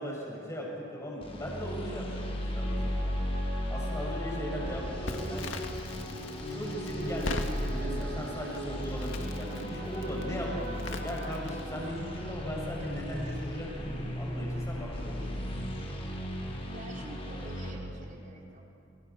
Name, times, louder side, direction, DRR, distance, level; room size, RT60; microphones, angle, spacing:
voice 1, 0.0-3.2 3.7-5.6 6.5-15.6, equal, 15° left, -3 dB, 7.5 m, -38 dB
sound 1, 1.2-17.7, equal, 30° left, 4.0 m, -36 dB
sound 2, 1.9-14.7 15.1-15.2, right 2 dB, 60° right, 7.8 m, -46 dB
Crackle, 5.1-11.9, left 2 dB, 90° left, 2.0 m, -41 dB
voice 2, 16.7-18.7, right 1 dB, 45° right, -1 dB, 4.6 m, -47 dB
29.5 x 26.5 x 6.1 m, 2.6 s
head